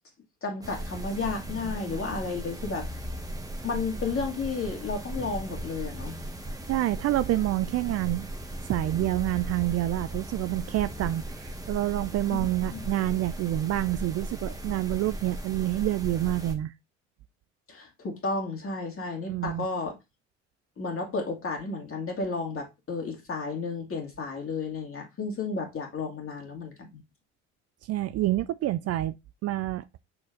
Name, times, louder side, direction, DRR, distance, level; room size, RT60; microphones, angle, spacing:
voice 1, 0.4-2.9 3.6-6.1 12.3-12.4 17.7-20.0 20.8-27.0, left 4 dB, 35° left, 2.5 m, -32 dB
sound 1, 0.6-16.5, right 1 dB, 10° right, 1.4 m, -37 dB
voice 2, 6.7-8.3 8.7-16.7 19.3-19.7 27.9-29.1 29.4-29.8, right 15 dB, 45° right, 0.4 m, -27 dB
6.2 x 4.4 x 3.8 m
hypercardioid pair, 60°, 37 cm